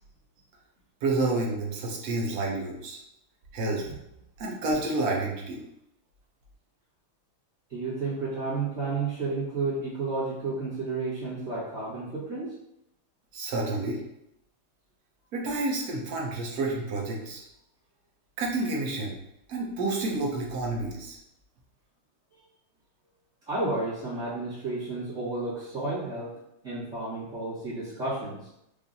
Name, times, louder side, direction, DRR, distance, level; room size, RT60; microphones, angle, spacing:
voice 1, 1.0-3.0 3.5-3.8 4.4-5.6 13.3-14.0 15.3-17.4 18.4-19.2 19.5-21.2, right 2 dB, 70° right, -2 dB, 0.9 m, -29 dB
voice 2, 7.7-12.6 23.5-26.3 26.6-28.5, right 3 dB, 40° right, -12 dB, 1.6 m, -31 dB
4.8 x 2.6 x 2.7 m, 0.82 s
omnidirectional pair, 2.4 m